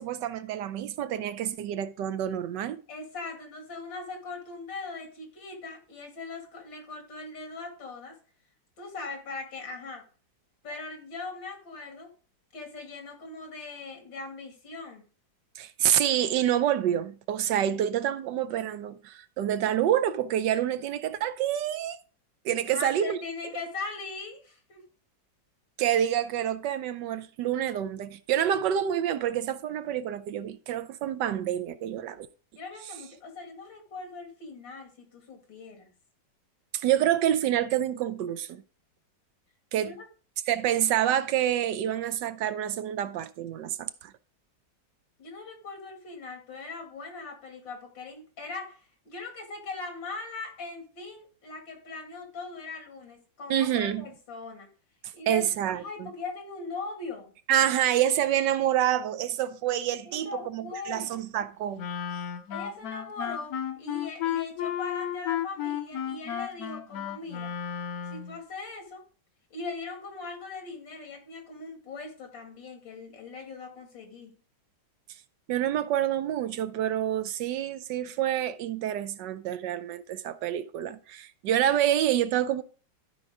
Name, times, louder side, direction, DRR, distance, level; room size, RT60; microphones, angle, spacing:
voice 1, 0.0-2.8 15.6-22.0 22.4-23.2 25.8-32.3 36.7-38.6 39.7-40.0 40.5-44.1 53.5-54.0 55.3-56.1 57.5-61.9 75.5-82.6, right 11 dB, 75° right, 1.3 m, -27 dB
voice 2, 2.9-8.2 8.8-10.1 10.6-12.1 12.5-15.0 22.7-24.8 32.5-35.9 39.8-40.1 45.2-54.7 55.1-55.4 55.7-57.3 60.0-61.1 62.5-67.5 68.1-69.0 69.5-74.3, left 3 dB, 85° left, 3.0 m, -40 dB
Wind instrument woodwind instrument, 61.8-68.4, left 9 dB, 60° left, 1.2 m, -33 dB
13.0 x 5.2 x 3.6 m
omnidirectional pair, 2.0 m